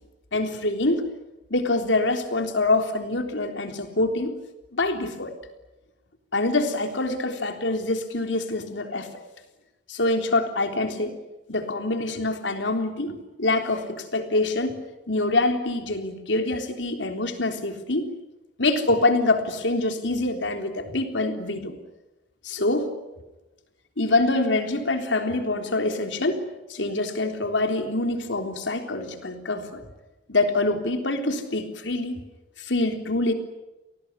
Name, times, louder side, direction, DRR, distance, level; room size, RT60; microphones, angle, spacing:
voice 1, 0.3-1.0 1.5-4.3 4.7-5.4 6.3-9.3 9.9-11.1 11.5-14.8 15.1-18.1 18.6-21.8 22.4-22.9 24.0-26.4 26.7-29.8 30.3-32.2 32.6-33.3, left 2 dB, 85° left, 5 dB, 3.7 m, -25 dB
28.5 x 19.0 x 9.8 m, 1.0 s
head